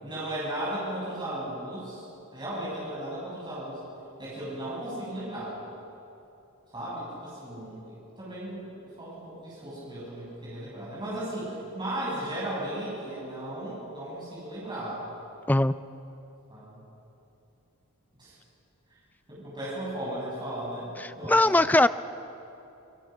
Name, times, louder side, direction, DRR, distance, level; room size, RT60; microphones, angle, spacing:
voice 1, 0.0-2.0 2.3-3.8 4.2-5.6 6.7-15.0 16.5-16.8 18.2-18.4 19.3-20.9 21.2-21.5, right 1 dB, 20° right, -8 dB, 6.9 m, -36 dB
voice 2, 21.3-21.9, left 1 dB, 10° left, 12 dB, 0.4 m, -20 dB
26.0 x 22.0 x 6.0 m, 2.9 s
head